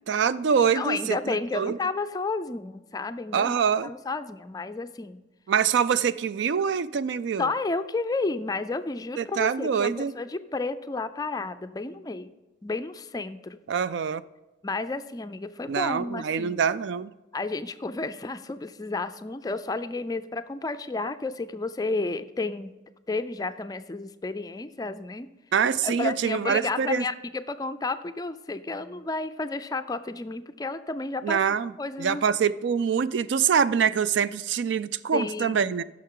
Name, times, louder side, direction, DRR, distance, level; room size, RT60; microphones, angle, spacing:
voice 1, 0.1-1.8 3.3-3.9 5.5-7.5 9.2-10.1 13.7-14.2 15.7-17.1 25.5-27.0 31.2-31.7 32.0-35.8, right 7 dB, 70° right, 16 dB, 0.3 m, -25 dB
voice 2, 0.7-3.6 3.8-5.2 7.4-12.3 12.6-13.6 14.6-16.6 17.3-22.7 23.1-25.3 25.8-31.4 31.8-32.2 35.1-35.7, left 3 dB, 20° left, 11 dB, 0.4 m, -31 dB
15.5 x 6.4 x 3.8 m, 1.1 s
head